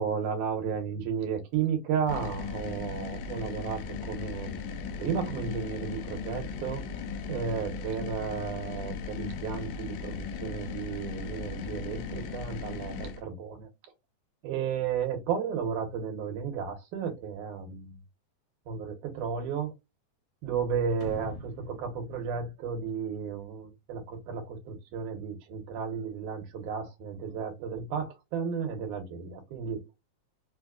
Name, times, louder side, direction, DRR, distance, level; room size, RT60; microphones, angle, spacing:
voice 1, 0.0-4.6 5.0-6.8 7.3-13.7 14.4-18.0 18.7-19.7 20.4-29.8, right 6 dB, 75° right, 2.5 m, -33 dB
sound 1, 2.1-13.2, left 5 dB, 90° left, 1.5 m, -37 dB
sound 2, 21.0-23.5, left 4 dB, 70° left, 1.6 m, -45 dB
5.1 x 2.2 x 2.4 m
omnidirectional pair, 3.7 m